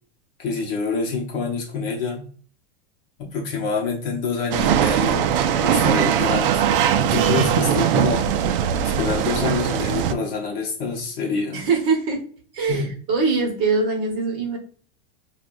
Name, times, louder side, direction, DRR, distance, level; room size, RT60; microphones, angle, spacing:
voice 1, 0.4-2.3 3.2-6.6 6.9-8.3 9.0-11.6 12.7-12.9, left 4 dB, 35° left, 1 dB, 0.9 m, -26 dB
sound 1, 4.5-10.1, right 9 dB, 65° right, 0.5 m, -20 dB
voice 2, 11.5-12.2 12.5-14.6, right 4 dB, 35° right, 1 dB, 1.2 m, -22 dB
6.3 x 2.3 x 2.5 m, 0.43 s
supercardioid pair, 175°, 31 cm